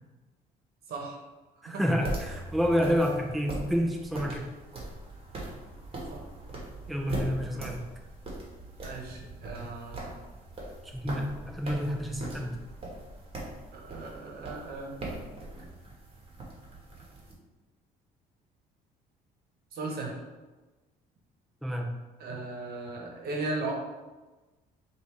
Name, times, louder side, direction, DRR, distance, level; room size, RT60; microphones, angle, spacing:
voice 1, 0.9-1.2 1.6-1.9 6.1-6.3 8.8-10.1 13.7-14.9 19.7-20.2 22.2-23.7, right 3 dB, 65° right, 0 dB, 1.1 m, -37 dB
voice 2, 1.6-4.5 6.9-7.8 10.8-12.6 21.6-22.0, equal, ahead, 0 dB, 0.5 m, -29 dB
sound 1, 1.9-17.3, right 2 dB, 35° right, 1.4 m, -41 dB
5.1 x 2.6 x 3.2 m, 1.2 s
cardioid pair, 110°, 17 cm